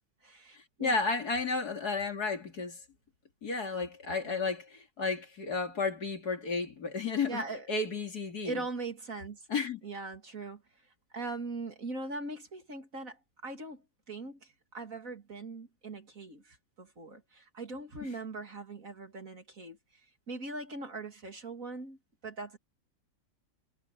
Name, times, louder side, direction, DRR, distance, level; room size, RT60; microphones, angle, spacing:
voice 1, 0.2-0.9 4.2-4.5 7.3-7.7 8.4-9.4 9.8-10.6 11.1-13.8 14.1-19.8 20.3-22.0 22.2-22.6, right 3 dB, 45° right, 3.1 m, -40 dB
voice 2, 0.8-2.8 3.4-7.4 7.7-8.6 9.5-9.8, left 4 dB, 60° left, 3.3 m, -32 dB
omnidirectional pair, 2.0 m